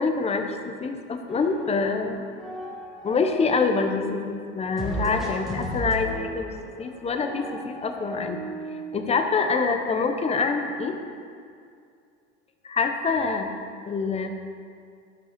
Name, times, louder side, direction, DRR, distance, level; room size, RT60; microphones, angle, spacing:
voice 1, 0.0-2.3 3.0-6.5 6.8-8.4 8.7-11.0 12.6-13.5 13.9-14.3, left 4 dB, 20° left, 5 dB, 0.8 m, -26 dB
sound 1, 1.3-2.0 2.3-3.9 4.8-8.8, right 1 dB, ahead, 1.7 m, -35 dB
12.5 x 5.5 x 5.1 m, 2.3 s
supercardioid pair, 130°, 33 cm